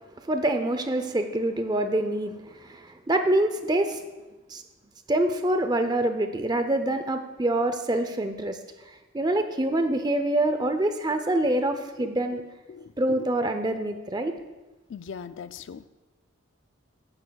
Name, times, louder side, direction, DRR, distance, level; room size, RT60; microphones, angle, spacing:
voice 1, 0.2-4.0 4.5-4.6 5.1-8.6 9.1-12.4 13.0-14.3, right 1 dB, 20° right, 7 dB, 0.5 m, -25 dB
voice 2, 12.7-13.2 14.9-15.8, left 6 dB, 60° left, 13 dB, 0.3 m, -39 dB
13.0 x 9.5 x 2.3 m, 1.1 s
head